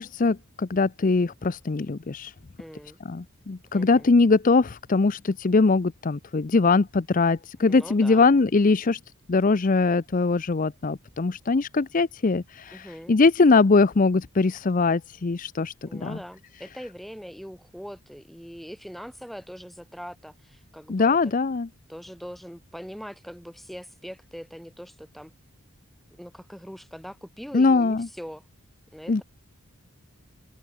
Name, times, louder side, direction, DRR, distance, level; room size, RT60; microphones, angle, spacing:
voice 1, 0.0-2.3 3.0-9.0 9.3-16.2 20.9-21.7 27.5-28.1 29.1-29.2, left 3 dB, 35° left, 0.5 m, -22 dB
voice 2, 2.6-3.0 3.7-4.1 7.6-8.4 12.7-13.2 15.9-21.2 21.9-25.3 26.1-28.4 28.9-29.2, equal, ahead, 7.3 m, -42 dB
head